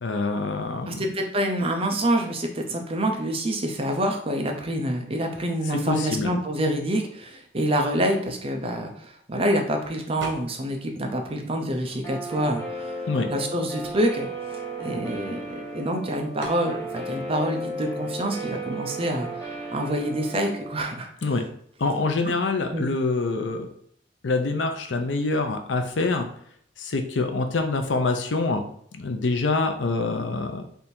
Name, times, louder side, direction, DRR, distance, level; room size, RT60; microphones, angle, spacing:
voice 1, 0.0-1.0 5.7-6.3 13.1-13.3 21.2-21.4 21.8-23.7 24.2-26.3 26.8-28.6 28.9-30.6, left 3 dB, 85° left, 6 dB, 0.6 m, -25 dB
voice 2, 0.8-13.0 13.3-14.3 14.8-19.3 19.7-21.1 22.2-22.3 22.7-22.9, right 1 dB, 30° right, 3 dB, 0.6 m, -27 dB
sound 1, 10.2-10.8 11.1-12.4 13.0-13.1 13.3-15.5 16.4-16.7, right 2 dB, 90° right, 1.0 m, -41 dB
Guitar, 12.0-20.7, right 1 dB, 15° left, 1.1 m, -34 dB
3.4 x 2.7 x 4.3 m, 0.64 s
head